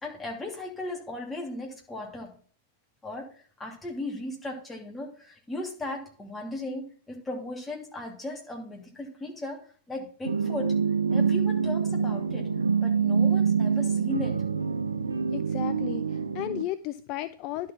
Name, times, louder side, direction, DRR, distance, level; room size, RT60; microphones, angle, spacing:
voice 1, 0.0-2.3 3.0-10.8 11.1-12.5 12.8-14.5, left 2 dB, 15° left, 0 dB, 2.8 m, -37 dB
sound 1, 10.2-16.6, right 6 dB, 90° right, 0.5 m, -26 dB
voice 2, 15.3-17.7, left 14 dB, 45° left, 12 dB, 0.4 m, -34 dB
11.0 x 4.6 x 5.9 m, 0.43 s
hypercardioid pair, 95°, 0 cm